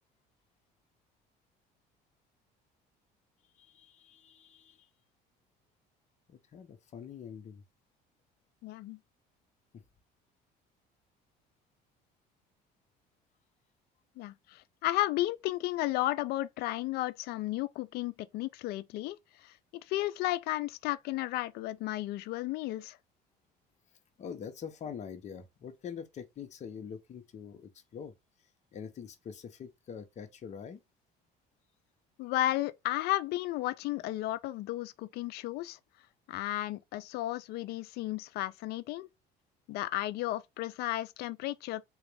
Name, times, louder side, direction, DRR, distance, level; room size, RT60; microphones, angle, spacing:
voice 1, 3.6-4.9 6.3-7.6 24.2-28.1 28.7-30.8, left 7 dB, 45° left, 0.8 m, -44 dB
voice 2, 8.6-9.0 14.2-23.0 32.2-35.8 36.3-39.1 39.7-41.8, left 16 dB, 70° left, 0.4 m, -33 dB
3.8 x 2.4 x 3.3 m
cardioid pair, 110°, 17 cm